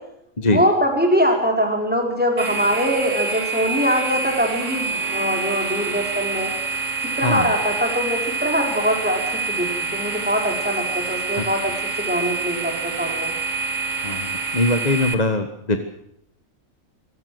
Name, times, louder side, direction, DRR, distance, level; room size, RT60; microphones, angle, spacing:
voice 1, 0.4-6.5 7.2-9.2 9.5-11.7 12.0-13.3, equal, 5° right, 1 dB, 4.9 m, -22 dB
sound 1, 2.4-15.1, right 4 dB, 75° right, 2.1 m, -27 dB
voice 2, 14.0-15.8, left 2 dB, 30° left, 7 dB, 1.5 m, -21 dB
25.0 x 16.0 x 7.9 m, 0.78 s
omnidirectional pair, 1.4 m